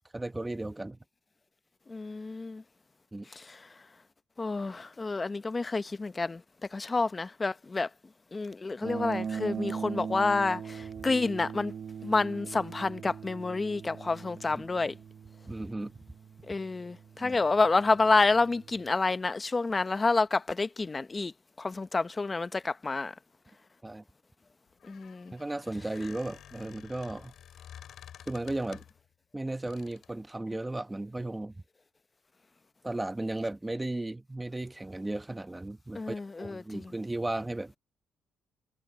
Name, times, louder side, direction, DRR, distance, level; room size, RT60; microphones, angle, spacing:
voice 1, 0.1-1.0 3.1-3.3 14.5-14.6 15.4-15.9 17.2-17.4 23.8-24.0 25.3-27.3 28.3-28.8 29.3-31.5 32.8-37.7, right 2 dB, 15° right, 1.2 m, -35 dB
voice 2, 1.9-2.6 3.3-3.7 4.4-6.4 6.7-7.9 8.3-11.7 12.0-14.9 16.5-21.3 21.6-23.1 24.9-25.3 35.9-36.9, left 3 dB, 25° left, 0.8 m, -29 dB
sound 1, 8.8-18.9, right 6 dB, 50° right, 1.2 m, -40 dB
Squeak, 24.7-29.1 29.7-30.2, left 10 dB, 70° left, 6.3 m, -51 dB
cardioid pair, 90°, 0 cm